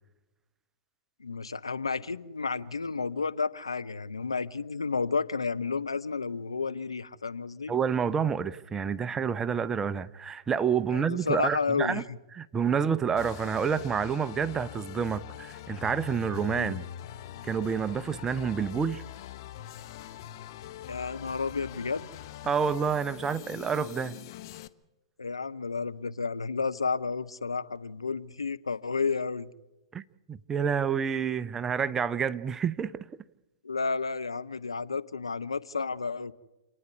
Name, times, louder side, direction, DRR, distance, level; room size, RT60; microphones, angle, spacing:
voice 1, 1.2-7.7 10.9-12.0 16.5-16.8 20.9-22.1 25.2-29.5 33.6-36.3, left 4 dB, 80° left, 0.7 m, -31 dB
voice 2, 7.7-12.0 12.3-16.9 17.4-19.0 22.5-24.2 29.9-30.0 30.3-33.1, right 7 dB, 15° right, 0.6 m, -28 dB
sound 1, 13.2-24.7, left 12 dB, 50° left, 0.9 m, -43 dB
28.5 x 9.7 x 9.7 m
figure-of-eight pair, 105°, 3 cm